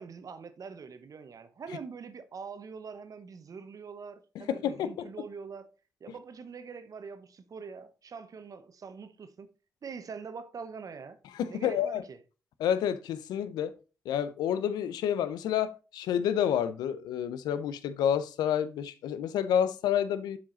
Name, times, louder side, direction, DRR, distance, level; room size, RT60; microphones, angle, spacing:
voice 1, 0.0-5.7 6.0-9.5 9.8-11.2 11.5-12.2, right 5 dB, 60° right, 1.0 m, -44 dB
voice 2, 4.3-5.1 11.3-12.0 12.6-13.7 14.1-20.4, left 9 dB, 85° left, 0.6 m, -29 dB
7.2 x 5.0 x 3.9 m
supercardioid pair, 50°, 7 cm